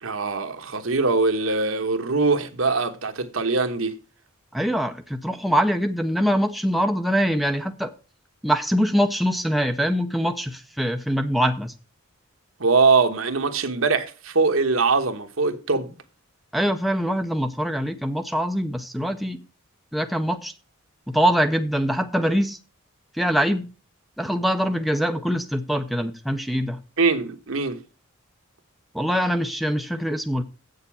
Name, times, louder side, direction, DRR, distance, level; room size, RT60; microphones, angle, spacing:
voice 1, 0.0-3.9 12.6-15.9 27.0-27.8, right 4 dB, 70° right, 1.2 m, -22 dB
voice 2, 4.5-7.9 8.4-11.7 16.5-19.4 19.9-20.5 21.1-22.6 23.1-23.7 24.2-26.8 28.9-30.4, equal, ahead, 0.6 m, -23 dB
8.1 x 6.7 x 7.2 m
head